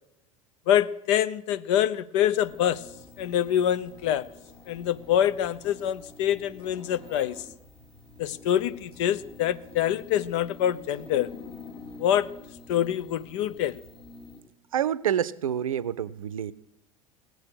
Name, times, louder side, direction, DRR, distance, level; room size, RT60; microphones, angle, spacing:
voice 1, 0.7-2.8 3.2-4.3 4.7-7.4 8.2-11.3 12.0-12.3 12.7-13.8, left 11 dB, 60° left, 17 dB, 0.6 m, -25 dB
sound 1, 2.3-14.4, left 3 dB, 30° left, 3.6 m, -48 dB
voice 2, 14.7-16.5, right 9 dB, 80° right, 18 dB, 0.5 m, -27 dB
18.0 x 7.9 x 6.3 m, 0.89 s
figure-of-eight pair, 80°, 17 cm